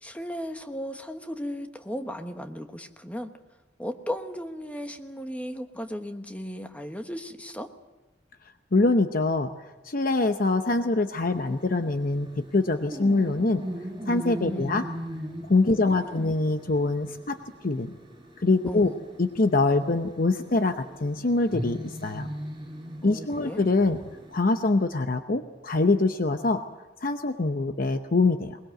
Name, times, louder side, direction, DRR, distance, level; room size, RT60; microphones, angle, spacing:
voice 1, 0.0-3.3 3.8-7.7 14.4-14.8 15.7-16.3 18.7-19.0 23.0-23.6, equal, 10° left, 6 dB, 1.2 m, -36 dB
voice 2, 8.7-13.6 14.1-14.8 15.4-17.4 17.6-17.9 18.4-18.9 19.2-22.3 23.0-24.0 24.3-26.6 27.0-28.6, left 3 dB, 50° left, 8 dB, 0.8 m, -24 dB
sound 1, 11.2-24.7, equal, 20° right, 7.2 m, -39 dB
22.0 x 20.5 x 7.8 m, 1.1 s
head